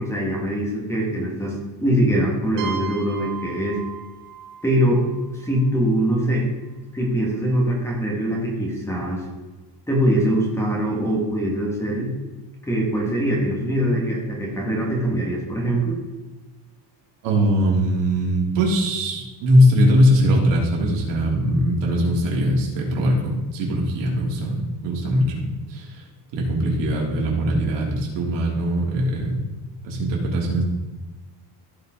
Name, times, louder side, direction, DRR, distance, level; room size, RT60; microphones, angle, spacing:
voice 1, 0.0-3.8 4.6-5.0 5.3-6.5 6.9-9.3 9.9-12.2 12.6-16.0, right 1 dB, 5° left, -3 dB, 2.1 m, -22 dB
sound 1, 2.6-6.2, right 8 dB, 90° right, 1.7 m, -37 dB
voice 2, 17.2-26.0 26.3-29.4 29.8-30.6, equal, 75° right, -2 dB, 3.3 m, -21 dB
15.5 x 5.4 x 3.9 m, 1.2 s
cardioid pair, 165°, 44 cm